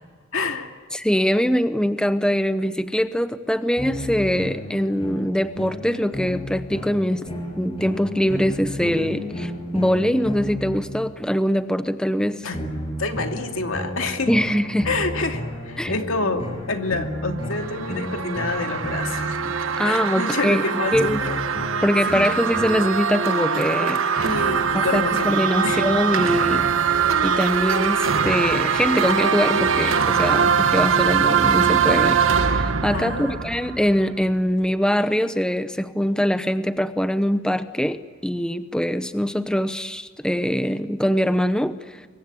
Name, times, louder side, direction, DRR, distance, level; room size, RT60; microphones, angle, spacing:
voice 1, 0.3-0.7 12.4-12.6 13.0-14.3 14.8-19.4 19.8-21.4 22.1-22.3 24.2-25.3 25.6-25.8 32.9-33.4, left 3 dB, 75° left, 4 dB, 2.6 m, -27 dB
voice 2, 0.9-7.2 7.6-12.5 14.3-14.9 15.8-15.9 19.5-21.2 21.8-24.3 24.7-26.7 27.2-42.1, equal, 5° left, 10 dB, 0.8 m, -23 dB
sound 1, 3.8-11.4 12.5-20.1 20.9-22.8, left 1 dB, 30° left, 7.5 m, -32 dB
sound 2, 17.3-34.2, right 6 dB, 70° right, 1.2 m, -22 dB
25.5 x 23.5 x 8.5 m, 1.5 s
head